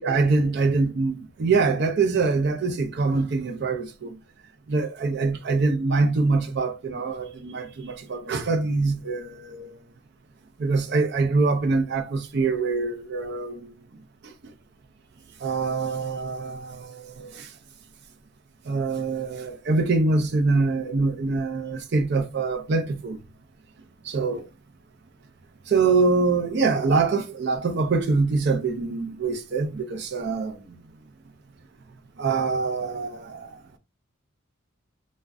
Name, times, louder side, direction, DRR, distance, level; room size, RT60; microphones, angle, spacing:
voice 1, 0.0-4.2 4.7-9.8 10.6-13.7 14.2-14.3 15.4-17.5 18.6-23.2 24.0-24.5 25.7-30.8 32.2-33.6, right 4 dB, 50° right, 0.4 m, -24 dB
2.4 x 2.1 x 3.4 m
head